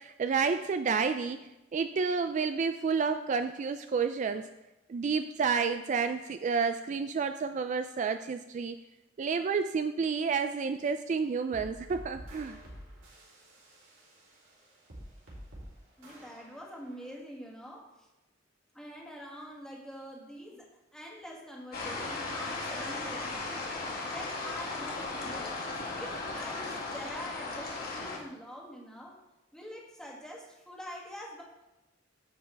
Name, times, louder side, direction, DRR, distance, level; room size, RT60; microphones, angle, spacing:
voice 1, 0.0-4.5 4.9-8.8 9.2-12.6, right 5 dB, 40° right, 9 dB, 0.3 m, -30 dB
sound 1, 11.5-17.2, equal, 80° right, 3.0 m, -49 dB
voice 2, 16.0-18.1 18.7-23.8 24.1-25.6 25.9-29.2 29.5-31.4, equal, 5° left, -2 dB, 1.7 m, -45 dB
sound 2, 21.7-28.2, left 3 dB, 55° left, 2.0 m, -36 dB
15.0 x 5.4 x 3.4 m, 0.97 s
head